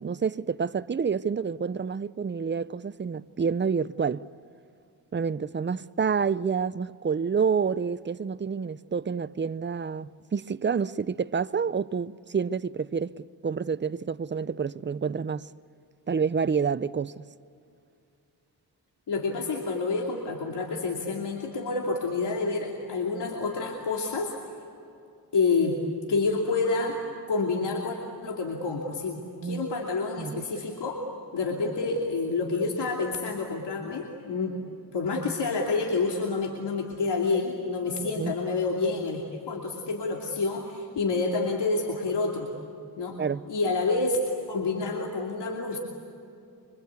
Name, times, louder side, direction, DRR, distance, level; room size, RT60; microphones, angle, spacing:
voice 1, 0.0-4.2 5.1-15.5 16.1-17.2 29.4-29.7 30.2-30.4 38.2-38.3 43.2-43.4, right 6 dB, 30° right, 0.6 m, -28 dB
voice 2, 19.1-24.3 25.3-25.8 26.1-27.0 27.3-31.0 31.3-34.6 34.9-42.5 43.0-43.2 43.5-44.2 44.5-45.8, left 3 dB, 80° left, 2.8 m, -28 dB
26.0 x 24.5 x 8.3 m
cardioid pair, 75°, 41 cm